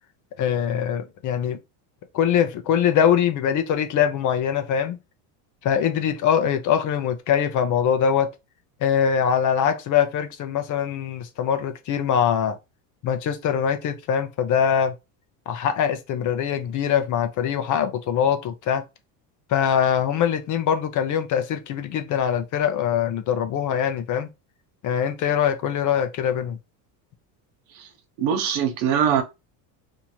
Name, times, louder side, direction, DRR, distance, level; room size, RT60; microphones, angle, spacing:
voice 1, 0.4-1.6 2.1-5.0 5.6-8.3 8.8-12.6 13.0-14.9 15.5-18.8 19.5-24.3 24.8-26.6, left 8 dB, 40° left, 0.7 m, -23 dB
voice 2, 28.2-29.2, right 8 dB, 70° right, 1.2 m, -22 dB
2.9 x 2.7 x 4.4 m
supercardioid pair, 135°, 49 cm